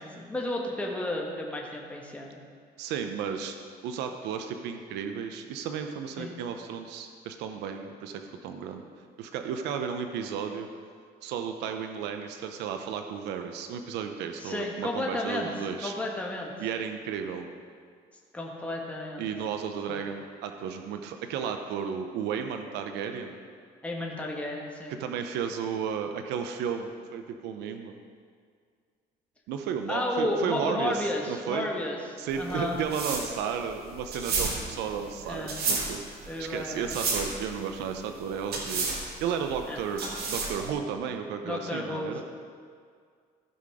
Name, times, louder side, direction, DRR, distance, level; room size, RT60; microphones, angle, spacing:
voice 1, 0.0-2.4 6.2-6.3 14.4-15.5 15.8-16.5 18.3-19.3 19.9-20.0 23.8-25.0 29.9-32.8 35.3-35.6 36.3-37.0 39.7-39.8 41.4-42.2, left 1 dB, 10° left, -2 dB, 1.5 m, -32 dB
voice 2, 2.8-3.5 3.8-8.8 9.2-10.7 11.2-15.9 16.6-17.5 19.2-23.4 24.9-27.9 29.5-31.7 32.2-38.9 39.2-40.0 40.3-42.2, right 7 dB, 90° right, 6 dB, 0.7 m, -33 dB
sound 1, 32.3-40.7, right 4 dB, 65° right, 2.0 m, -32 dB
15.0 x 5.8 x 4.9 m, 2.1 s
cardioid pair, 110°, 17 cm